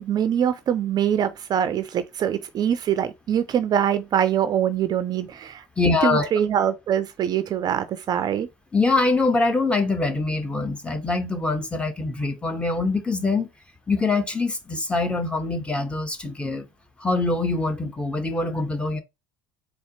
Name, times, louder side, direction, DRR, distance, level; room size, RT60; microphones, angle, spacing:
voice 1, 0.0-5.6 6.0-8.5, right 9 dB, 40° right, 0.5 m, -23 dB
voice 2, 5.8-6.3 8.7-13.5 13.9-16.7 17.0-19.0, left 3 dB, 10° left, 1.1 m, -24 dB
4.2 x 2.9 x 2.8 m
hypercardioid pair, 70°, 10 cm